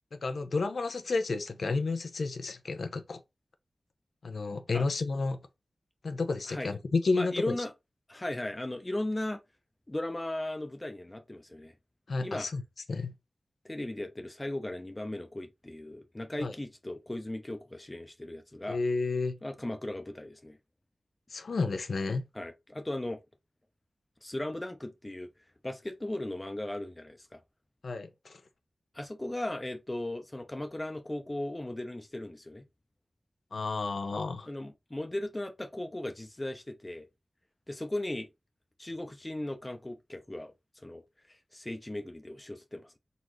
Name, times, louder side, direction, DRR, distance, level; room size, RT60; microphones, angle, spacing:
voice 1, 0.1-3.2 4.2-5.4 6.0-7.6 12.1-12.6 12.9-13.1 16.4-16.5 18.7-19.4 21.3-22.3 27.8-28.4 33.5-34.5, left 3 dB, 80° left, 0.7 m, -31 dB
voice 2, 7.1-7.7 8.1-9.4 9.9-11.7 12.2-12.5 13.6-18.8 19.4-20.6 22.3-23.2 24.2-25.3 25.6-27.4 28.9-32.6 34.5-37.1 37.7-38.3 38.8-40.5 40.8-41.0 41.3-43.0, left 1 dB, 25° left, 0.7 m, -37 dB
4.0 x 3.9 x 3.1 m
wide cardioid pair, 70°, 0 cm